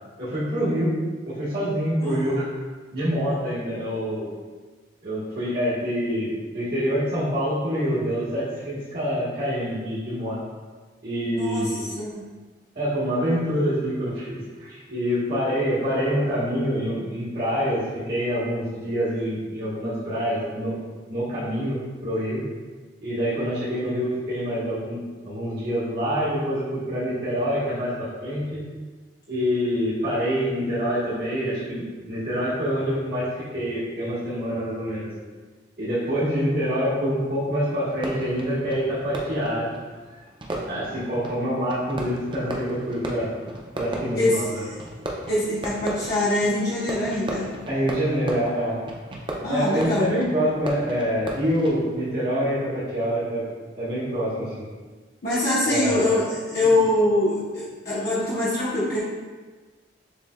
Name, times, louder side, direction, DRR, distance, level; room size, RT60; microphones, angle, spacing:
voice 1, 0.2-1.0 1.3-2.5 2.9-4.3 5.0-10.4 11.0-11.9 12.7-20.8 21.1-22.4 23.0-25.0 25.2-28.6 29.3-33.3 33.5-35.1 35.8-39.7 40.7-43.3 43.8-44.7 47.7-48.8 49.5-53.4 53.8-54.6 55.6-56.0, equal, 55° right, -13 dB, 1.5 m, -26 dB
voice 2, 2.0-2.4 11.3-12.3 44.1-44.6 45.3-47.5 49.4-50.1 55.2-59.0, left 1 dB, 55° left, -10 dB, 1.0 m, -24 dB
Fireworks, 37.9-52.1, right 1 dB, 25° right, 0.5 m, -36 dB
6.9 x 3.3 x 2.3 m, 1.4 s
head